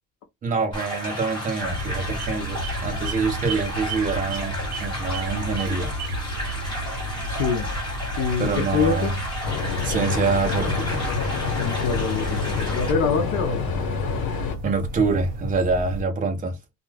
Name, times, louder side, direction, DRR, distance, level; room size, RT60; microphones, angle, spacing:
voice 1, 0.4-6.0 8.4-9.1 9.8-11.1 14.6-16.6, right 4 dB, 20° right, 0.6 m, -26 dB
sound 1, 0.7-12.9, equal, 10° left, 1.2 m, -33 dB
sound 2, 1.6-16.0, right 1 dB, 40° right, 1.0 m, -32 dB
voice 2, 7.3-7.7 8.2-9.1 11.5-13.7, left 5 dB, 50° left, 0.5 m, -25 dB
sound 3, 9.4-14.6, left 5 dB, 65° left, 1.0 m, -28 dB
2.3 x 2.2 x 3.1 m
cardioid pair, 170°, 39 cm